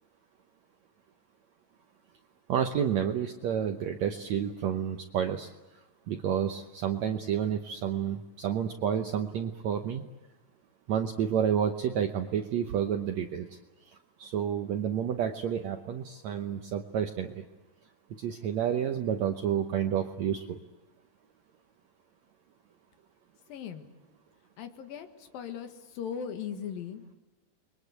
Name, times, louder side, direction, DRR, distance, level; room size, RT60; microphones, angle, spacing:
voice 1, 2.5-5.5 6.1-10.0 10.9-13.5 14.2-17.4 18.2-20.6, right 8 dB, 65° right, 5 dB, 1.9 m, -30 dB
voice 2, 23.5-23.9 24.6-27.1, left 7 dB, 80° left, 8 dB, 3.4 m, -39 dB
29.5 x 22.0 x 8.2 m, 1.1 s
omnidirectional pair, 4.0 m